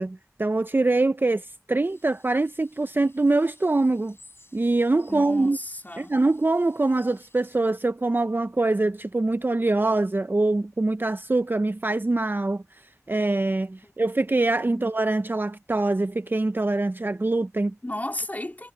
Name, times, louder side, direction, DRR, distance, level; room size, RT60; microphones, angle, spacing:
voice 1, 0.0-4.2 4.5-5.6 6.0-12.6 13.1-17.7, right 2 dB, 35° right, 0.4 m, -24 dB
sound 1, 1.8-7.6, left 2 dB, 45° left, 5.9 m, -58 dB
voice 2, 5.1-6.2 13.8-13.9 14.6-14.8 17.8-18.7, left 1 dB, 30° left, 2.7 m, -34 dB
wide cardioid pair, 45°, 6 cm